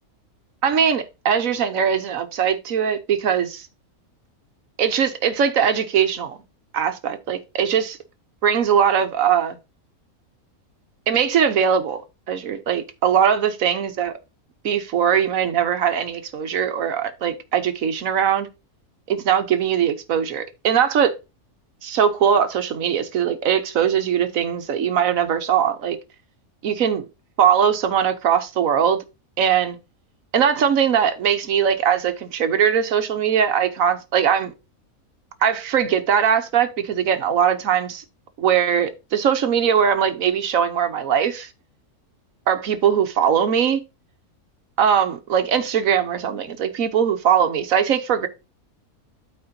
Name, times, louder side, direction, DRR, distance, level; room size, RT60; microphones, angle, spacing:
voice 1, 0.6-3.7 4.8-6.4 6.7-7.9 8.4-9.6 11.1-12.0 12.3-14.1 14.6-18.5 19.1-21.2 21.8-26.0 26.6-27.0 27.4-29.0 29.4-29.8 30.3-34.5 35.4-38.0 38.4-41.5 42.5-43.8 44.8-48.3, right 8 dB, 70° right, 1.3 m, -20 dB
12.5 x 4.3 x 2.8 m
omnidirectional pair, 1.5 m